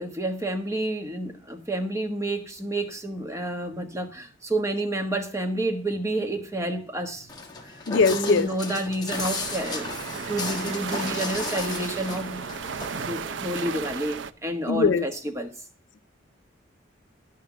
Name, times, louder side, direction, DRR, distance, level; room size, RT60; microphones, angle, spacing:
voice 1, 0.0-7.3 8.1-9.9 10.3-12.4 13.0-15.5, right 1 dB, 15° right, 1.3 m, -29 dB
Walk footsteps, 7.3-13.1, left 3 dB, 20° left, 1.5 m, -34 dB
voice 2, 7.9-8.5 14.7-15.0, left 5 dB, 65° left, 0.5 m, -21 dB
sound 1, 9.1-14.3, right 6 dB, 65° right, 0.5 m, -34 dB
10.5 x 5.8 x 5.9 m
head